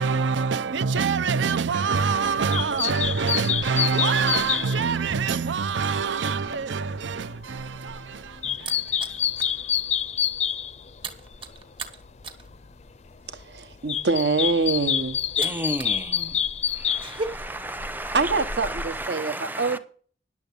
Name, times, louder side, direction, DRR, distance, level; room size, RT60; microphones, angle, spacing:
voice 1, 0.0-9.2, right 5 dB, 80° right, 0.5 m, -25 dB
sound 1, 2.0-11.6 11.9-12.8 13.2-19.1, left 9 dB, 35° left, 0.4 m, -28 dB
sound 2, 7.8-9.6 10.0-10.2 10.4-16.0 16.3-17.3, right 4 dB, 30° right, 1.4 m, -38 dB
voice 2, 13.3-15.2 18.1-19.8, right 3 dB, 65° right, 1.2 m, -25 dB
voice 3, 15.4-16.4 17.0-19.8, right 1 dB, 10° right, 0.8 m, -33 dB
10.5 x 7.2 x 6.8 m
head